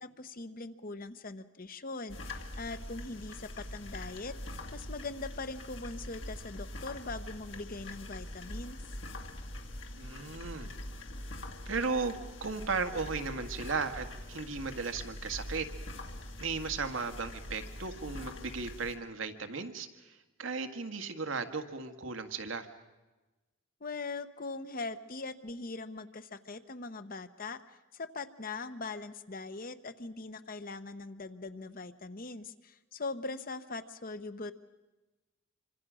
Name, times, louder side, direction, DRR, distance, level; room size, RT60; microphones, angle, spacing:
voice 1, 0.0-4.4 4.7-8.8 23.8-34.5, left 3 dB, 45° left, 11 dB, 1.1 m, -41 dB
sound 1, 2.1-19.0, left 1 dB, 70° left, 2.5 m, -43 dB
voice 2, 10.0-10.7 11.7-15.7 16.4-22.7, right 4 dB, 85° right, 7 dB, 1.8 m, -36 dB
26.5 x 25.0 x 6.3 m, 1.1 s
head